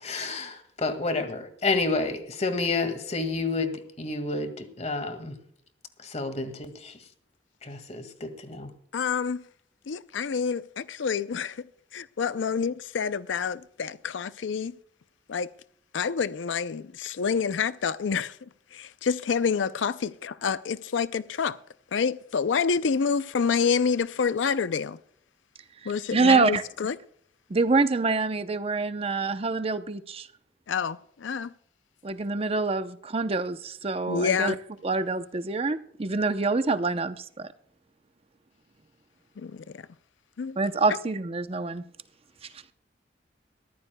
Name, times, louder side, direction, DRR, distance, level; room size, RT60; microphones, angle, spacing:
voice 1, 0.0-5.3 6.0-6.9 7.6-8.7, left 3 dB, 40° left, 1.9 m, -30 dB
voice 2, 8.9-9.4 9.9-11.6 11.9-14.8 15.3-15.5 15.9-18.4 18.7-21.6 21.9-25.0 25.9-27.0 30.7-31.5 34.1-34.6 39.4-39.8 40.4-40.6, left 6 dB, 90° left, 0.5 m, -28 dB
voice 3, 25.8-26.6 27.5-30.3 32.0-34.5 34.8-37.5 40.6-41.8, right 3 dB, 35° right, 0.7 m, -26 dB
21.5 x 14.5 x 2.2 m
head